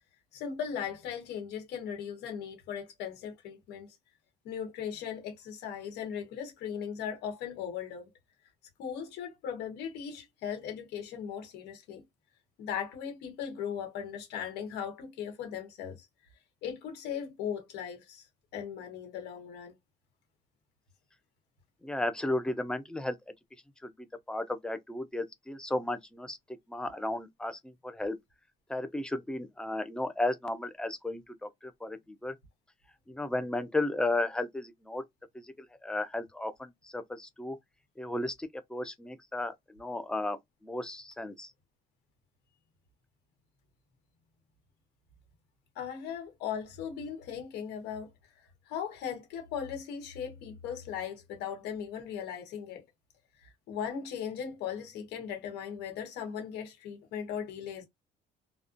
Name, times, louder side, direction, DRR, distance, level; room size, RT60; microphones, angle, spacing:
voice 1, 0.3-3.9 4.4-8.1 8.8-12.0 12.6-16.1 16.6-18.3 18.5-19.7 45.7-48.1 48.7-52.8 53.4-57.8, left 8 dB, 80° left, 1.0 m, -38 dB
voice 2, 21.8-23.1 23.8-23.9 24.3-26.4 26.7-28.2 28.7-32.3 33.1-35.0 35.8-37.6 38.0-40.4 40.6-41.5, left 2 dB, 5° left, 0.4 m, -34 dB
2.3 x 2.1 x 2.5 m
cardioid pair, 110°, 17 cm